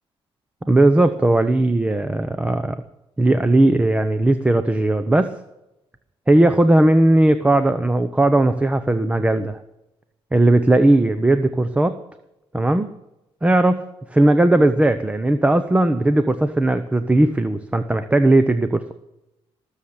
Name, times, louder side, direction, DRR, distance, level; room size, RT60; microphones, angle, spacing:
voice 1, 0.7-2.8 3.2-5.3 6.3-9.6 10.3-12.0 12.5-12.9 13.4-18.8, right 1 dB, 10° right, 10 dB, 0.9 m, -17 dB
20.0 x 7.3 x 9.4 m, 0.91 s
cardioid pair, 130°, 10 cm